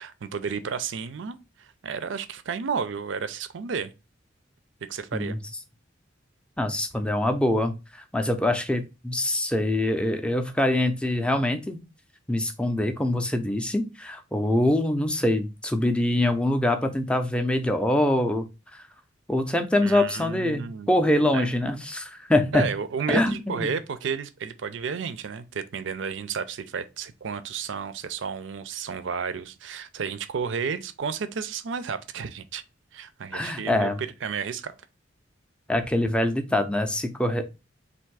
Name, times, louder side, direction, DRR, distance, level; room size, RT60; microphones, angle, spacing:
voice 1, 0.0-3.9 4.9-5.4 19.8-21.0 21.3-21.5 22.5-32.6 32.9-34.7, right 6 dB, 65° right, 0.4 m, -32 dB
voice 2, 6.6-11.8 12.3-18.5 18.7-18.8 19.3-22.7 23.1-23.7 33.3-34.0 35.7-37.5, left 1 dB, 5° left, 0.4 m, -24 dB
3.5 x 2.6 x 4.6 m
head